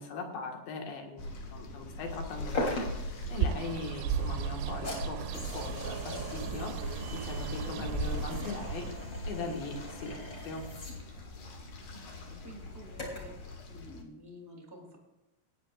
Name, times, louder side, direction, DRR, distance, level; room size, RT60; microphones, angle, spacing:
voice 1, 0.0-6.7 7.1-8.9 9.3-10.6, left 3 dB, 60° left, 2 dB, 2.8 m, -40 dB
sound 1, 1.2-14.0, left 1 dB, 80° left, 1.7 m, -42 dB
sound 2, 2.5-13.4, left 1 dB, 25° left, 3.2 m, -41 dB
Bird, 3.2-9.1, right 8 dB, 80° right, 3.0 m, -36 dB
voice 2, 11.9-13.3 13.7-15.0, equal, 10° right, -1 dB, 1.2 m, -50 dB
21.0 x 9.9 x 2.5 m, 0.98 s
omnidirectional pair, 6.0 m